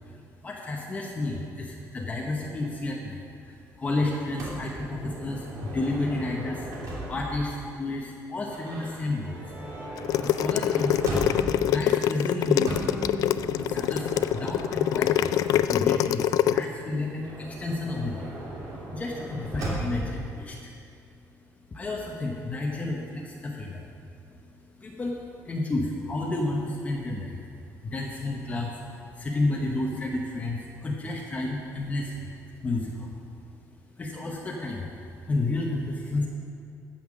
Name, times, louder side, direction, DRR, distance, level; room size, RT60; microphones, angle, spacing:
voice 1, 0.4-9.5 10.2-11.4 11.6-12.7 13.7-18.3 18.9-20.7 21.7-23.8 24.8-25.1 25.4-27.4 27.8-32.3 32.6-33.1 34.0-34.9 35.3-36.3, left 2 dB, 20° left, -1 dB, 1.0 m, -31 dB
Motor vehicle (road) / Sliding door, 4.4-7.5 8.4-11.7 12.6-15.9 17.2-20.1, right 1 dB, 65° right, 3.1 m, -37 dB
Bowed string instrument, 9.2-15.0, right 1 dB, 30° right, 1.8 m, -43 dB
sound 1, 10.0-16.6, left 11 dB, 65° left, 0.3 m, -24 dB
15.5 x 5.7 x 6.3 m, 2.5 s
cardioid pair, 150°, 6 cm